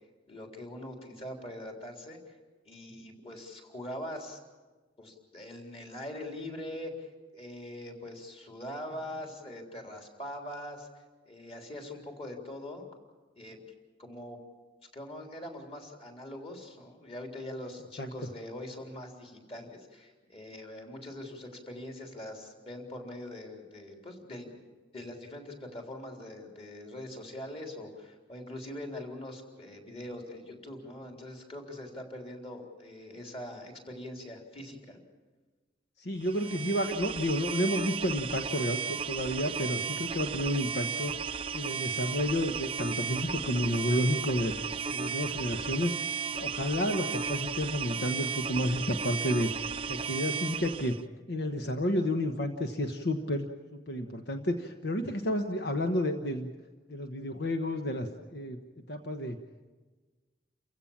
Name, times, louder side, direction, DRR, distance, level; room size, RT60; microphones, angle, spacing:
voice 1, 0.3-2.3 2.7-4.4 5.0-12.9 13.4-13.6 14.0-14.4 14.9-24.6 24.9-35.0, left 1 dB, 30° left, 2 dB, 3.7 m, -43 dB
voice 2, 36.0-41.1 41.5-44.5 44.9-45.9 46.3-49.5 49.9-50.9 51.3-56.5 56.9-58.6 58.9-59.4, left 1 dB, 70° left, 5 dB, 1.2 m, -31 dB
sound 1, 36.2-51.0, right 6 dB, 30° right, 0.6 m, -35 dB
29.5 x 16.0 x 7.4 m, 1.3 s
head